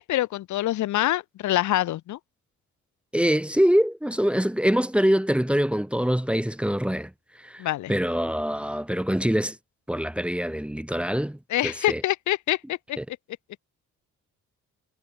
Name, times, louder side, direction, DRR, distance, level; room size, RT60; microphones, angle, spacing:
voice 1, 0.0-2.2 7.6-7.9 11.5-13.0, left 14 dB, 75° left, 1.0 m, -25 dB
voice 2, 3.1-7.1 7.4-9.6 9.9-12.0 13.0-13.1, equal, 5° right, 1.1 m, -24 dB
cardioid pair, 90°, 30 cm